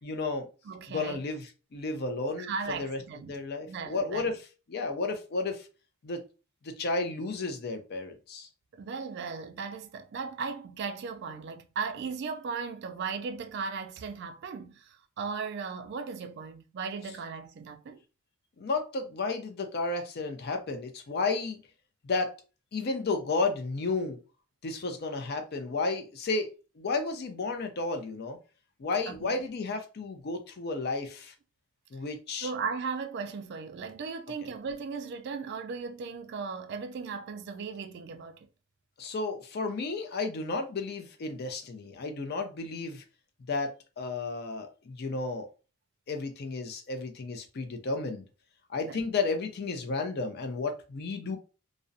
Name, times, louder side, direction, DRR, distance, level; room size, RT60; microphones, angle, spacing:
voice 1, 0.0-0.5 0.9-3.0 3.3-4.4 4.7-5.7 6.0-6.2 6.6-8.5 18.6-21.6 22.0-22.3 22.7-24.2 24.6-26.5 26.8-28.4 28.8-31.3 31.9-32.5 39.0-43.0 43.5-45.5 46.1-48.2 48.7-51.4, left 3 dB, 50° left, 0.4 m, -32 dB
voice 2, 0.7-1.2 2.4-3.4 3.7-4.3 8.7-18.0 29.1-29.4 32.4-38.4 48.8-49.0, right 5 dB, 50° right, 0.3 m, -37 dB
2.4 x 2.0 x 2.5 m
head